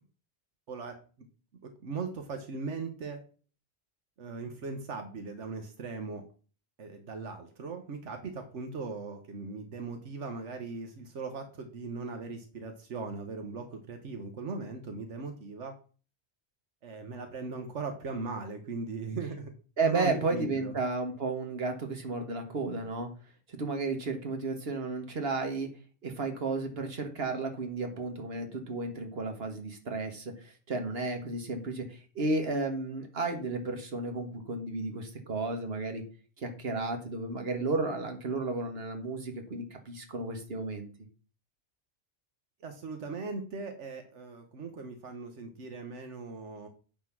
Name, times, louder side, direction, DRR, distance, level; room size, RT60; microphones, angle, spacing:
voice 1, 1.6-3.2 4.2-6.2 6.8-15.8 16.8-19.5 19.8-20.7 42.6-46.7, right 4 dB, 85° right, 6 dB, 1.4 m, -39 dB
voice 2, 19.8-23.1 23.5-25.7 26.0-36.0 36.4-40.9, right 3 dB, 60° right, 5 dB, 1.9 m, -33 dB
9.4 x 4.4 x 6.0 m, 0.38 s
omnidirectional pair, 1.2 m